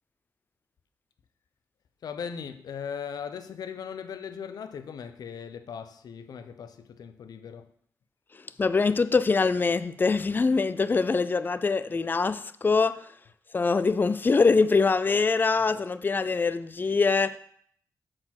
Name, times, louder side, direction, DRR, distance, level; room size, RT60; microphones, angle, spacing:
voice 1, 2.0-7.7, left 7 dB, 80° left, 0.6 m, -38 dB
voice 2, 8.6-13.1 13.5-17.4, left 4 dB, 30° left, 0.4 m, -23 dB
7.7 x 4.4 x 5.8 m
wide cardioid pair, 110°, 7 cm